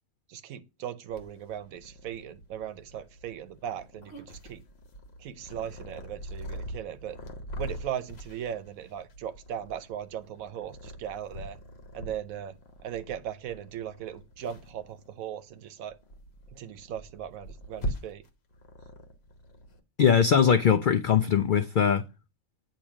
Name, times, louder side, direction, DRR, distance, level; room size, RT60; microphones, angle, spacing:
voice 1, 0.3-4.6 5.2-7.2 7.6-11.6 11.9-12.6 12.8-16.0 16.5-18.3, right 9 dB, 85° right, 1.1 m, -38 dB
Purr, 1.1-19.8, equal, 50° left, 1.3 m, -43 dB
voice 2, 20.0-22.0, left 7 dB, 80° left, 0.4 m, -21 dB
8.6 x 2.9 x 6.1 m
omnidirectional pair, 1.4 m